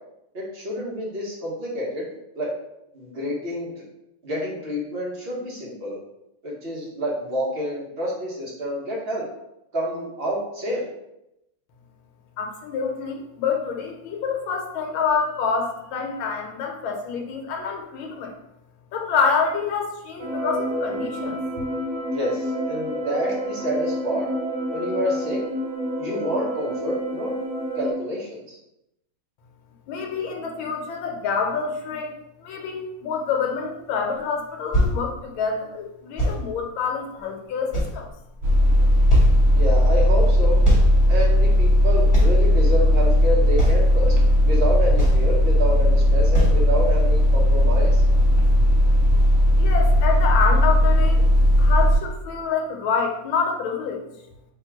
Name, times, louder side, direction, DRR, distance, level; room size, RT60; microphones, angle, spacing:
voice 1, 0.3-2.0 2.3-2.5 2.9-3.7 4.2-6.0 6.4-9.2 9.7-10.8 22.1-24.3 24.7-25.4 26.0-27.3 27.7-28.6 39.5-40.6 41.1-44.1 44.4-48.0, equal, 40° right, -4 dB, 1.0 m, -28 dB
voice 2, 12.4-18.3 18.9-21.4 29.9-32.1 32.4-38.1 49.6-51.2 51.6-54.0, left 5 dB, 75° left, 2 dB, 1.5 m, -27 dB
sound 1, 20.2-27.9, equal, 55° right, 1.8 m, -29 dB
sound 2, 34.1-34.2 34.7-35.0 36.2-36.4 37.2-37.3 37.7-38.4 38.7-38.8 39.1-39.4 40.6-40.9 41.2-41.3 42.1-42.4 43.0-43.1 43.6-43.9 44.6-44.7 45.0-45.3 45.7-45.8 46.3-46.6 47.2-47.3, equal, 20° left, 0.9 m, -21 dB
sound 3, 38.4-51.9, equal, 80° right, 0.7 m, -17 dB
3.5 x 3.0 x 4.5 m, 0.85 s
omnidirectional pair, 2.3 m